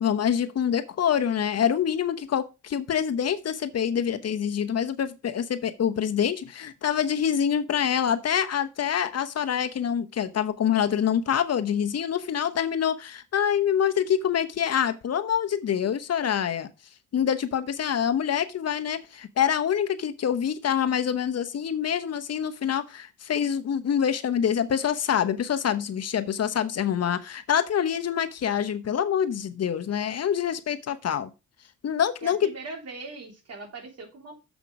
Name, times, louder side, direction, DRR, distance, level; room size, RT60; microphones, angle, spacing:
voice 1, 0.0-16.7 17.1-31.3 31.8-32.5, left 8 dB, 55° left, 0.9 m, -26 dB
voice 2, 32.2-34.4, right 3 dB, 55° right, 3.3 m, -40 dB
7.2 x 5.9 x 4.8 m
cardioid pair, 85°, 31 cm